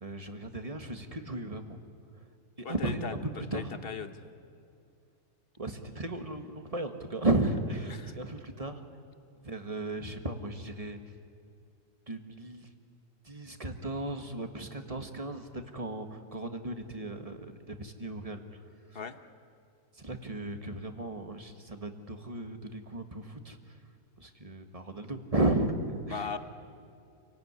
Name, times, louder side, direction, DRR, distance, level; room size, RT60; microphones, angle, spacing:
voice 1, 0.0-1.8 2.6-3.0 3.3-3.7 5.6-8.8 9.4-11.0 12.1-12.7 13.2-18.4 18.9-19.0 19.9-23.7 24.2-26.3, right 2 dB, 25° right, 6 dB, 1.6 m, -35 dB
voice 2, 2.6-4.2 7.9-8.1 18.9-19.2 26.1-26.4, left 6 dB, 40° left, 10 dB, 1.2 m, -38 dB
28.0 x 17.5 x 9.7 m, 2.5 s
omnidirectional pair, 1.6 m